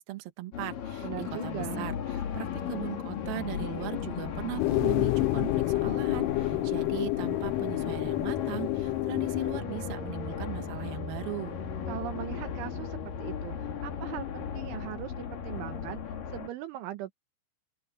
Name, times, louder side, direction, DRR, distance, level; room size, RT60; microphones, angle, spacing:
voice 1, 0.0-11.6, right 15 dB, 60° right, 3.0 m, -39 dB
sound 1, 0.5-16.5, left 7 dB, 50° left, 3.5 m, -36 dB
voice 2, 1.0-1.9 11.9-15.1 15.4-17.1, right 13 dB, 80° right, 3.4 m, -39 dB
sound 2, 4.6-9.6, left 22 dB, 85° left, 3.0 m, -29 dB
open air
omnidirectional pair, 5.8 m